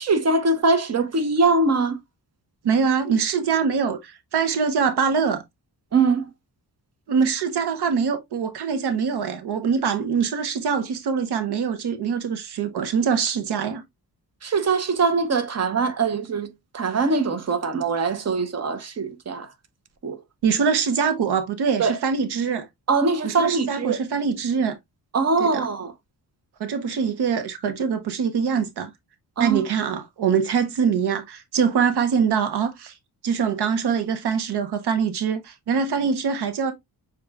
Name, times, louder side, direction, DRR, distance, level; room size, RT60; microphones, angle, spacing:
voice 1, 0.0-2.0 5.9-6.3 14.4-19.5 20.0-20.2 21.8-22.0 22.9-24.0 25.1-25.9 29.4-29.6, right 4 dB, 40° right, 1.0 m, -22 dB
voice 2, 2.6-5.4 7.1-13.8 20.4-22.7 23.2-24.8 25.4-25.7 26.6-28.9 29.4-32.9 33.2-36.7, right 6 dB, 85° right, 0.9 m, -23 dB
6.8 x 3.0 x 2.3 m
cardioid pair, 100°, 39 cm